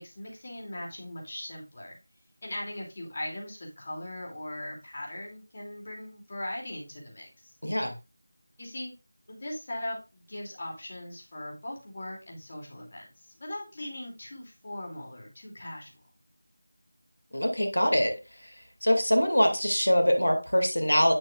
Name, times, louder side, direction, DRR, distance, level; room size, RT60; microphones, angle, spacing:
voice 1, 0.0-2.0 2.4-7.5 8.6-8.9 9.3-16.0, left 1 dB, 40° left, -2 dB, 2.6 m, -39 dB
voice 2, 7.6-7.9 17.3-18.1 18.8-21.1, equal, 90° left, 4 dB, 2.2 m, -23 dB
8.6 x 6.2 x 2.4 m, 0.28 s
figure-of-eight pair, 170°, 0 cm